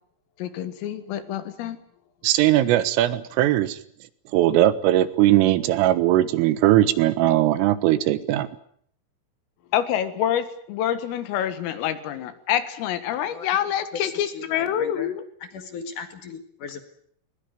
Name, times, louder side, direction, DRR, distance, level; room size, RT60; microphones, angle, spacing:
voice 1, 0.4-1.8 9.7-15.2, left 10 dB, 85° left, 10 dB, 4.4 m, -26 dB
voice 2, 2.2-3.8 4.3-8.5, right 14 dB, 80° right, 14 dB, 3.8 m, -19 dB
voice 3, 13.9-15.1 15.4-16.8, left 5 dB, 55° left, 7 dB, 2.6 m, -37 dB
21.0 x 20.5 x 9.1 m, 0.65 s
omnidirectional pair, 5.8 m